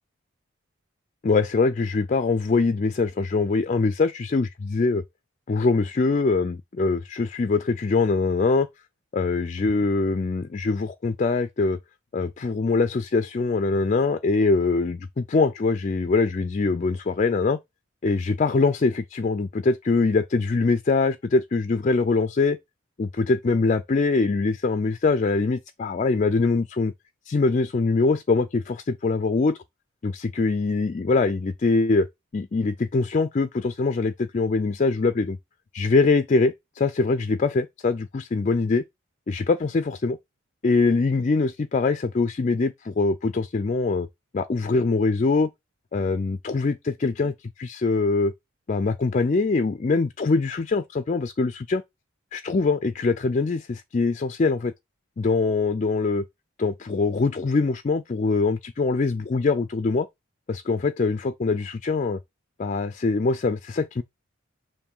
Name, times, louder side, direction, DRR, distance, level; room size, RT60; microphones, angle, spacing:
voice 1, 1.2-5.0 5.5-8.7 9.1-11.8 12.1-17.6 18.0-22.6 23.0-26.9 27.3-29.6 30.0-32.1 32.3-35.4 35.7-38.8 39.3-40.2 40.6-44.1 44.3-45.5 45.9-48.3 48.7-51.8 52.3-54.7 55.2-56.3 56.6-60.1 60.5-62.2 62.6-64.0, left 3 dB, 35° left, 0.3 m, -23 dB
7.0 x 2.6 x 5.4 m
head